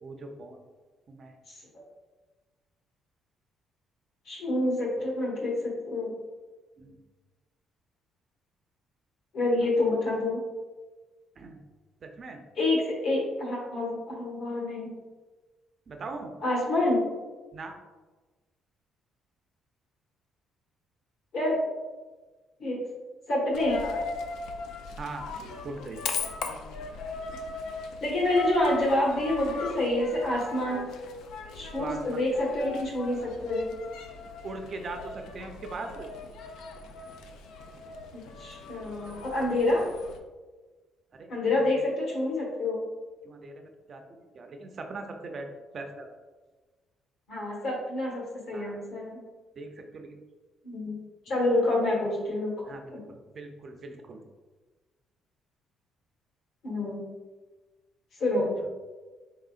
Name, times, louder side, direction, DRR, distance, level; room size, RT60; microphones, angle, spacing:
voice 1, 0.0-0.6 1.1-1.4 6.8-7.0 11.4-11.6 12.0-12.4 15.9-16.3 17.5-17.7 25.0-26.0 31.8-32.2 34.4-36.1 41.1-41.3 41.7-41.8 43.2-46.1 48.5-48.8 49.6-50.2 51.3-51.4 52.7-54.2, right 3 dB, 35° right, 4 dB, 0.4 m, -40 dB
voice 2, 4.2-6.1 9.3-10.4 12.6-14.9 16.4-17.0 21.3-21.6 22.6-22.8 23.3-23.8 28.0-30.9 31.5-33.7 38.1-39.8 41.3-42.8 47.3-49.2 50.6-51.0 51.2-52.5 52.9-53.0 56.6-57.0 58.2-58.5, left 1 dB, 55° left, -3 dB, 1.3 m, -27 dB
Coin (dropping), 23.5-40.2, left 4 dB, 85° left, 0.4 m, -39 dB
4.1 x 3.7 x 2.4 m, 1.3 s
cardioid pair, 170°, 0 cm